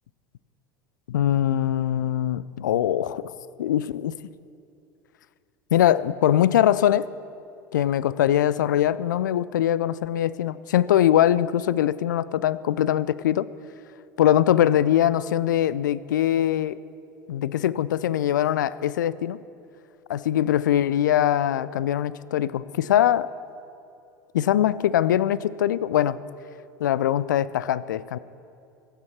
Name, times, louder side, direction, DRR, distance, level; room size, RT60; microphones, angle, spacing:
voice 1, 1.1-3.3 3.6-4.2 5.7-7.1 7.7-13.5 14.2-16.8 17.3-19.4 20.1-23.3 24.3-26.2 26.8-28.2, left 11 dB, 70° left, 19 dB, 0.4 m, -22 dB
23.0 x 9.2 x 4.4 m, 2.6 s
figure-of-eight pair, 75°, 10 cm